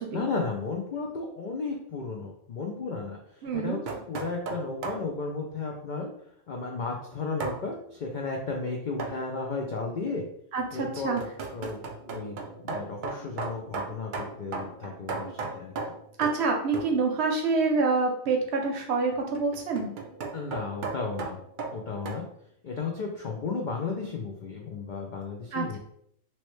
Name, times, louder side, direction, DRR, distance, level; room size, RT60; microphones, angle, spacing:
voice 1, 0.1-6.1 6.5-10.2 10.7-11.8 12.1-15.7 20.3-21.4 21.7-22.2 22.6-25.8, left 4 dB, 85° left, 1 dB, 0.4 m, -34 dB
voice 2, 3.4-3.8 10.5-11.2 16.2-19.9 25.5-25.8, right 4 dB, 65° right, 2 dB, 0.8 m, -27 dB
sound 1, 3.5-5.1 7.4-7.6 9.0-9.3 10.6-16.5 16.7-17.0 19.1-22.2, right 4 dB, 85° right, 0.4 m, -36 dB
3.0 x 2.8 x 3.1 m, 0.69 s
omnidirectional pair, 1.4 m